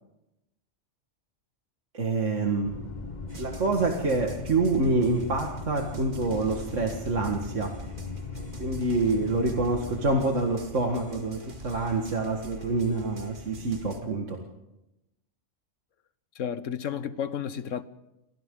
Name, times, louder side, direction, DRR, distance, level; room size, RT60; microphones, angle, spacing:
voice 1, 1.9-2.8 3.4-7.7 8.6-14.4, right 3 dB, 75° right, 2.2 m, -27 dB
sound 1, 2.6-10.3, left 5 dB, 40° left, 1.2 m, -39 dB
sound 2, 3.3-14.0, right 2 dB, 40° right, 2.2 m, -45 dB
voice 2, 16.4-17.8, left 8 dB, 80° left, 1.3 m, -32 dB
29.5 x 25.0 x 3.8 m
omnidirectional pair, 1.3 m